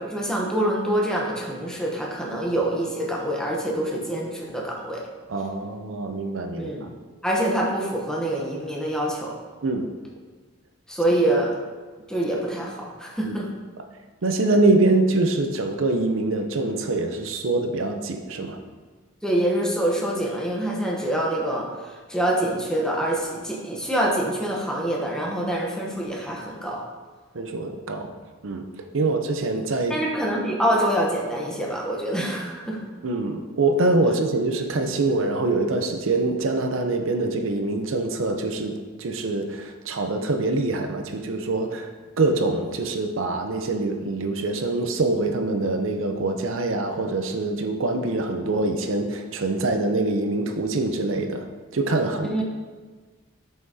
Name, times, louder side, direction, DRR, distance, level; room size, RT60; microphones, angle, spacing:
voice 1, 0.0-5.0 6.6-6.9 7.2-9.3 10.9-11.6 12.1-13.5 19.2-21.7 22.1-26.8 29.0-29.1 29.9-32.8 52.2-52.4, right 1 dB, 5° left, -2 dB, 0.9 m, -25 dB
voice 2, 5.3-6.7 9.6-9.9 13.2-13.3 14.2-18.6 27.3-28.2 28.4-28.7 28.9-30.0 33.0-41.9 42.2-51.5 51.7-52.4, right 2 dB, 90° right, 5 dB, 0.6 m, -24 dB
7.7 x 5.7 x 2.8 m, 1.4 s
head